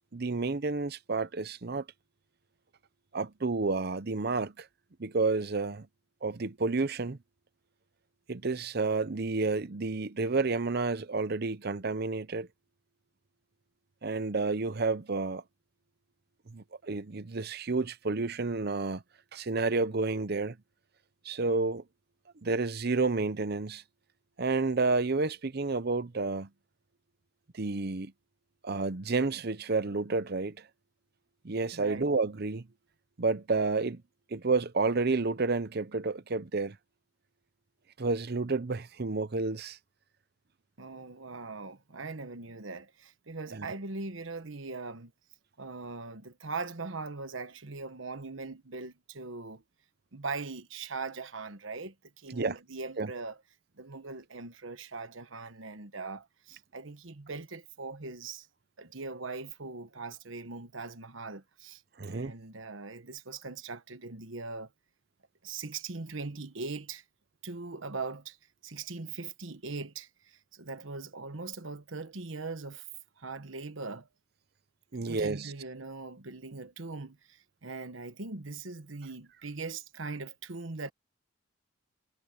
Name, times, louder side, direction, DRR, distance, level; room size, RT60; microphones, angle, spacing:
voice 1, 0.1-1.8 3.1-4.7 5.0-5.9 6.2-7.2 8.3-12.5 14.0-15.4 16.5-19.0 19.3-20.6 21.2-21.8 22.4-23.8 24.4-26.5 27.5-28.1 28.6-30.6 31.4-32.7 33.2-34.0 34.3-36.8 38.0-39.8 43.5-43.7 52.3-52.5 53.0-53.1 62.0-62.3 74.9-75.5, right 3 dB, 50° right, 0.7 m, -30 dB
voice 2, 31.7-32.1 40.8-45.1 45.6-49.6 50.1-53.4 53.8-58.5 58.8-61.8 62.1-64.7 65.4-67.0 67.4-68.4 68.6-72.9 73.2-74.1 75.0-80.9, right 3 dB, 75° right, 1.3 m, -40 dB
head